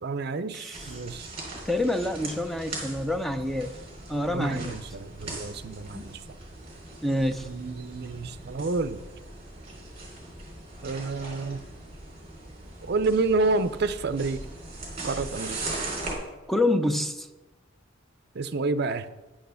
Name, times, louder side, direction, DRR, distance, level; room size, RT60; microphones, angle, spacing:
voice 1, 0.0-1.3 4.3-6.2 7.4-9.0 10.8-11.6 12.8-14.4 15.0-15.6 18.3-19.1, right 3 dB, 55° right, 0.5 m, -29 dB
sound 1, 0.7-16.1, right 2 dB, 30° right, 3.4 m, -40 dB
voice 2, 1.7-3.7 4.1-4.8 5.9-6.1 7.0-7.5 16.5-17.3, left 1 dB, ahead, 0.5 m, -27 dB
9.9 x 6.4 x 6.9 m
head